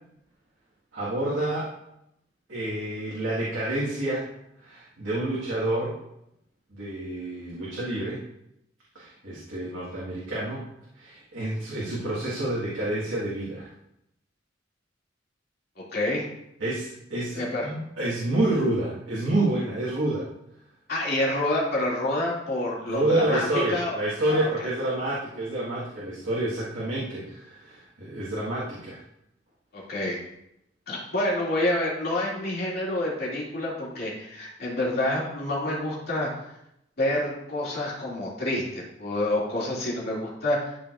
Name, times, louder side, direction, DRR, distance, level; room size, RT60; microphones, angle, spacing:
voice 1, 0.9-1.7 2.5-4.3 4.6-6.0 6.7-8.2 8.9-10.7 11.0-13.7 16.6-20.3 22.9-29.0, right 1 dB, 75° right, -7 dB, 1.7 m, -28 dB
voice 2, 15.9-16.2 17.3-17.7 20.9-24.0 24.3-24.4 29.7-30.2 30.9-36.3 37.0-40.8, left 1 dB, 55° left, -5 dB, 2.6 m, -28 dB
12.0 x 4.5 x 2.5 m, 0.82 s
head